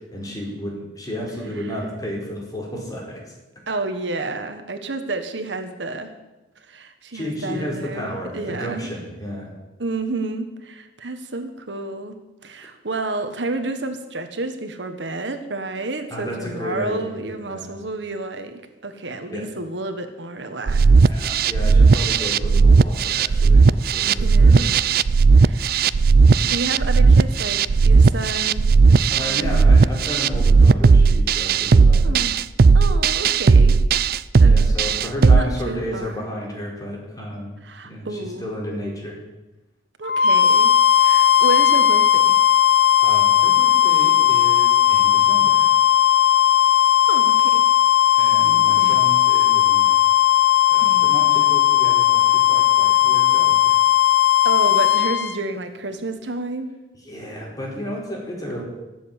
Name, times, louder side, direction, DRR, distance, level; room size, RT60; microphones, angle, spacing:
voice 1, 0.1-3.2 7.1-9.5 16.1-17.7 19.3-19.5 20.7-24.8 29.1-32.2 34.5-37.5 37.8-39.2 43.0-45.7 48.2-50.0 50.7-53.8 57.1-58.6, equal, 20° left, -2 dB, 4.7 m, -32 dB
voice 2, 3.7-6.1 6.7-8.9 9.8-21.3 24.2-24.7 25.4-25.9 26.4-29.7 32.0-32.4 32.7-33.8 34.4-34.6 35.2-36.2 37.6-38.5 40.0-42.4 47.1-47.7 48.2-48.3 48.8-49.0 50.8-51.1 54.4-56.7, right 2 dB, 80° right, 7 dB, 1.4 m, -30 dB
sound 1, 20.7-35.4, right 4 dB, 55° right, 0.4 m, -15 dB
sound 2, 40.0-55.3, left 11 dB, 65° left, 1.0 m, -16 dB
16.0 x 7.8 x 8.7 m, 1.1 s
head